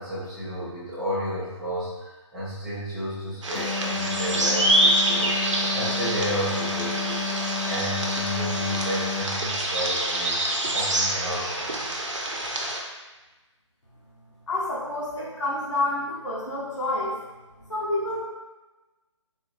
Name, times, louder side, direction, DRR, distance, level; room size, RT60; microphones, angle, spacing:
voice 1, 0.0-1.9 2.3-5.3 5.7-7.2 7.6-11.9, equal, ahead, -13 dB, 0.5 m, -32 dB
sound 1, 3.4-12.8, right 1 dB, 70° right, 0.7 m, -26 dB
sound 2, 3.5-9.4, left 5 dB, 80° left, 0.5 m, -31 dB
voice 2, 14.5-17.1 17.7-18.2, left 2 dB, 65° left, -7 dB, 1.0 m, -28 dB
3.9 x 2.8 x 2.3 m, 1.1 s
figure-of-eight pair, 150°, 16 cm